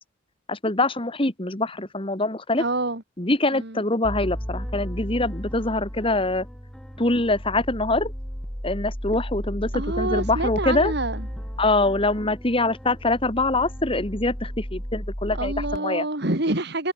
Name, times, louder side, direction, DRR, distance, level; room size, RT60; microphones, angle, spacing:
voice 1, 0.5-2.6 3.2-6.5 7.0-8.1 8.6-9.7 10.0-10.9 11.6-16.1, left 2 dB, 25° left, 2.1 m, -24 dB
voice 2, 2.6-3.0 3.5-3.8 9.7-11.3 15.3-16.9, right 2 dB, 55° right, 3.1 m, -27 dB
sound 1, 4.0-15.8, equal, 5° left, 1.2 m, -34 dB
head